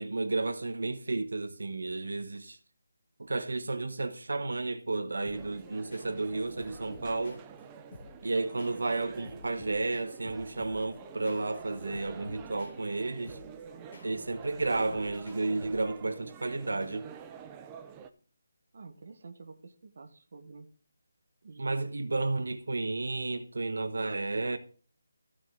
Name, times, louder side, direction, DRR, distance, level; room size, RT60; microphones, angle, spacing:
voice 1, 0.0-2.6 3.2-7.4 8.2-13.4 14.0-17.1 21.6-24.6, right 3 dB, 80° right, 1.1 m, -32 dB
sound 1, 5.2-16.1, left 2 dB, 35° left, 2.1 m, -52 dB
sound 2, 5.3-18.1, right 7 dB, 10° right, 0.5 m, -48 dB
voice 2, 18.7-20.7 21.4-22.4, right 4 dB, 45° right, 1.4 m, -49 dB
14.5 x 6.3 x 3.8 m
hypercardioid pair, 175°, 0 cm